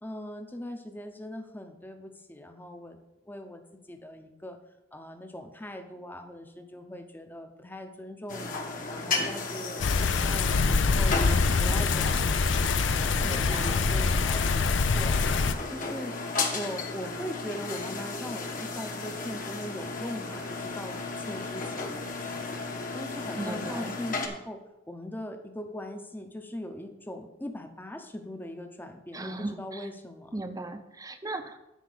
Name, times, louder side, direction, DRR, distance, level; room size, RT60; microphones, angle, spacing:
voice 1, 0.0-3.0 3.3-3.6 3.9-4.6 4.9-8.6 8.9-12.7 13.0-15.4 15.7-16.2 16.5-22.4 22.9-24.6 24.9-30.4, left 1 dB, 10° left, 5 dB, 0.8 m, -40 dB
sound 1, 8.3-24.3, left 3 dB, 45° left, 1.3 m, -34 dB
sound 2, 9.8-15.6, left 4 dB, 75° left, 0.6 m, -25 dB
voice 2, 13.2-13.8 23.4-23.9 29.1-29.8 30.3-31.6, right 2 dB, 20° right, 8 dB, 0.7 m, -37 dB
10.0 x 4.6 x 6.6 m, 0.95 s
head